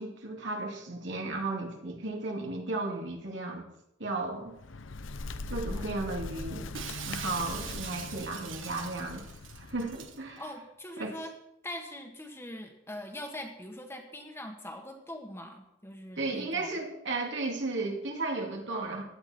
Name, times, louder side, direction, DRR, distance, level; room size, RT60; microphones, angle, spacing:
voice 1, 0.0-3.7 4.0-4.5 5.5-6.7 7.1-9.3 9.6-10.4 11.0-11.2 16.2-19.0, right 2 dB, 65° right, 1 dB, 2.7 m, -34 dB
Bird, 4.4-10.2, left 3 dB, 80° left, 0.8 m, -41 dB
Shatter, 6.7-10.2, right 8 dB, 85° right, 1.4 m, -42 dB
voice 2, 10.4-11.3 11.6-16.7, left 1 dB, 15° left, 3 dB, 1.6 m, -42 dB
16.5 x 11.0 x 4.5 m, 0.83 s
head